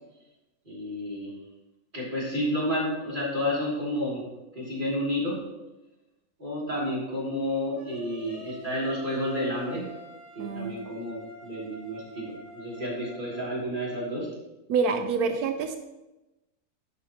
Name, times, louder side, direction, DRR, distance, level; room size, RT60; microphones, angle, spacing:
voice 1, 0.6-1.4 1.9-4.2 4.5-5.4 6.4-9.8 10.3-14.3, left 1 dB, 30° right, -6 dB, 3.1 m, -30 dB
sound 1, 7.8-13.5, right 2 dB, 50° right, 3.5 m, -46 dB
voice 2, 10.4-10.8 14.7-15.8, right 5 dB, 85° right, 7 dB, 1.2 m, -27 dB
11.0 x 7.0 x 3.0 m, 1.0 s
omnidirectional pair, 1.6 m